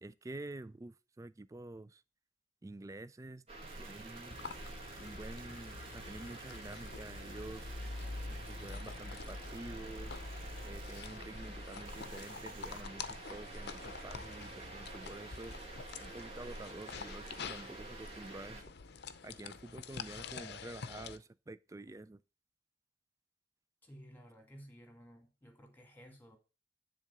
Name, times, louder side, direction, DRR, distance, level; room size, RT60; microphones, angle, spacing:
voice 1, 0.0-2.0 2.6-3.4 3.8-4.4 5.0-7.7 8.3-10.2 10.6-15.6 16.0-18.7 19.2-22.2, right 2 dB, 15° right, 0.3 m, -48 dB
sound 1, 3.5-18.6, right 2 dB, 30° right, 1.9 m, -49 dB
sound 2, 3.6-11.6 11.9-12.8, right 4 dB, 45° right, 0.7 m, -57 dB
sound 3, 4.3-21.2, left 4 dB, 55° left, 0.7 m, -46 dB
voice 2, 23.8-26.4, equal, 10° left, 1.8 m, -55 dB
10.5 x 3.8 x 6.7 m
head